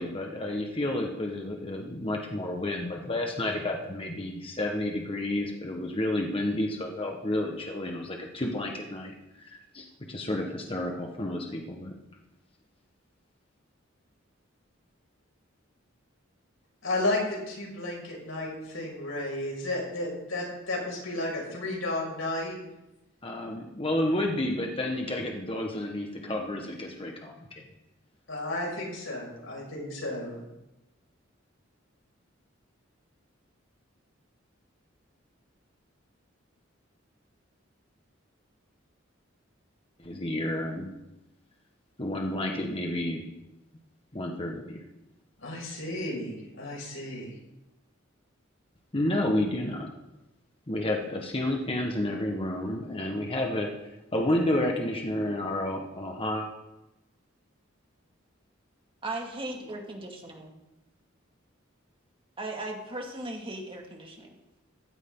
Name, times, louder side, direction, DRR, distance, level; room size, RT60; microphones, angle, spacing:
voice 1, 0.0-11.9 23.2-27.6 40.0-40.9 42.0-43.2 44.1-44.8 48.9-49.9 50.7-53.7 54.1-56.5, left 1 dB, 30° left, 1 dB, 1.4 m, -30 dB
voice 2, 16.8-22.6 28.3-30.3 45.4-47.3, left 2 dB, 85° left, -2 dB, 6.1 m, -33 dB
voice 3, 59.0-60.5 62.4-64.6, right 2 dB, 25° right, 1 dB, 2.3 m, -37 dB
16.0 x 14.0 x 3.9 m, 0.95 s
head